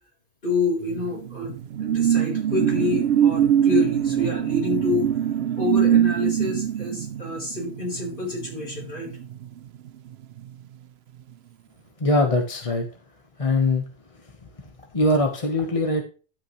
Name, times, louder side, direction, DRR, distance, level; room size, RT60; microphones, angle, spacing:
voice 1, 0.4-5.1 5.6-9.2, left 3 dB, 55° left, -1 dB, 4.4 m, -28 dB
sound 1, 0.9-9.9 10.2-10.5, right 10 dB, 80° right, 0.9 m, -23 dB
voice 2, 12.0-12.8 13.4-13.9 14.2-14.3 14.6-16.0, left 2 dB, 35° left, 3 dB, 1.2 m, -22 dB
12.5 x 8.4 x 3.1 m, 0.36 s
omnidirectional pair, 1.1 m